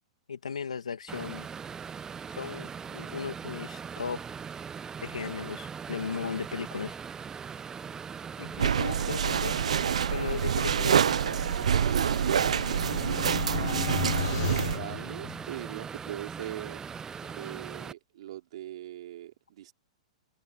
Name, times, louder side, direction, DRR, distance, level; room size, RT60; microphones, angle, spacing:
voice 1, 0.3-1.5 2.4-4.2 5.0-7.0 8.4-9.7 10.1-11.0 17.2-17.3, left 6 dB, 90° left, 2.3 m, -36 dB
sound 1, 1.1-17.9, right 6 dB, 15° right, 0.8 m, -40 dB
sound 2, 8.6-14.8, right 8 dB, 80° right, 0.5 m, -26 dB
voice 2, 11.6-16.8 17.3-19.7, right 13 dB, 65° right, 3.4 m, -41 dB
sound 3, 12.1-15.8, left 19 dB, 55° left, 0.6 m, -36 dB
hypercardioid pair, 120°, 3 cm